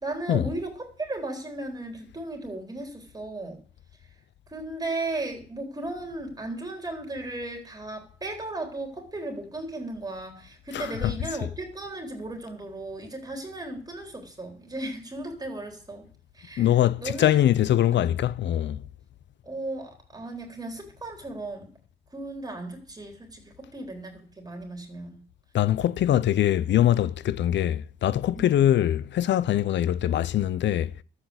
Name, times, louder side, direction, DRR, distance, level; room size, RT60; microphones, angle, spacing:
voice 1, 0.0-3.6 4.5-16.1 16.3-17.4 17.9-18.1 19.5-21.7 22.1-25.2 28.4-28.6, right 2 dB, 20° right, 3.9 m, -36 dB
voice 2, 10.7-11.1 16.6-18.8 25.5-30.9, left 12 dB, 65° left, 0.7 m, -23 dB
12.0 x 8.4 x 8.1 m
cardioid pair, 90°, 20 cm